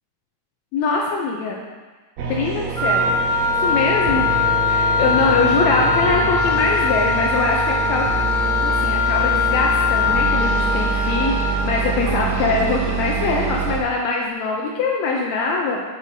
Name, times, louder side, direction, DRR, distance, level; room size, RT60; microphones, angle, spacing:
voice 1, 0.7-1.6 2.3-3.2 3.6-4.3 4.7-8.1 8.6-15.8, left 4 dB, 80° left, -1 dB, 1.6 m, -22 dB
sound 1, 2.2-13.8, right 5 dB, 80° right, 1.6 m, -25 dB
Wind instrument woodwind instrument, 2.7-11.6, left 5 dB, 40° left, 0.7 m, -21 dB
7.2 x 6.5 x 2.7 m, 1.3 s
omnidirectional pair, 3.7 m